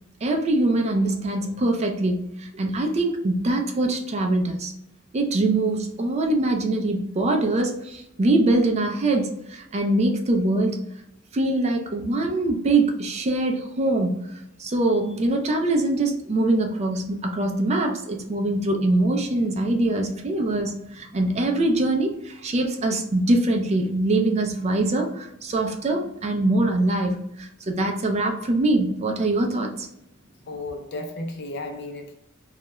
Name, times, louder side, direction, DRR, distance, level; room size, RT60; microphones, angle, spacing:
voice 1, 0.2-4.7 5.1-10.8 11.3-14.2 14.6-29.9, right 2 dB, 35° right, 0.4 m, -23 dB
voice 2, 30.5-32.2, left 2 dB, 55° left, 0.5 m, -34 dB
2.3 x 2.1 x 2.8 m
head